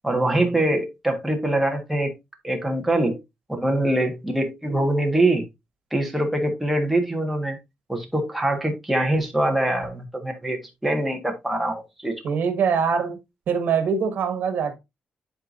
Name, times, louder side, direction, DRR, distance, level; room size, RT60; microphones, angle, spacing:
voice 1, 0.0-2.1 2.4-3.2 3.5-5.4 5.9-7.6 7.9-12.1, right 1 dB, 5° right, 1.5 m, -23 dB
voice 2, 12.2-13.2 13.5-14.8, right 6 dB, 65° right, 1.7 m, -23 dB
11.5 x 4.7 x 2.6 m
wide cardioid pair, 165°, 3 cm